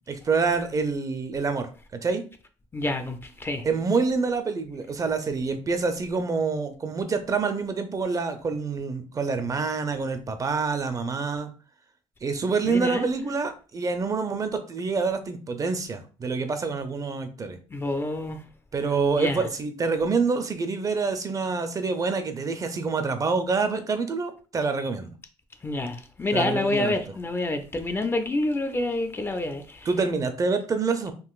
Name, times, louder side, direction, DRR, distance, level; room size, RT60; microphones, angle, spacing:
voice 1, 0.1-1.7 2.0-2.2 3.6-11.5 12.2-17.6 18.7-25.1 26.3-27.0 29.9-31.1, right 4 dB, 35° right, 0.5 m, -26 dB
voice 2, 2.7-3.6 12.6-13.1 17.7-18.4 19.2-19.4 25.6-29.8, left 2 dB, 20° left, 0.4 m, -27 dB
3.8 x 2.5 x 2.3 m
cardioid pair, 85°, 11 cm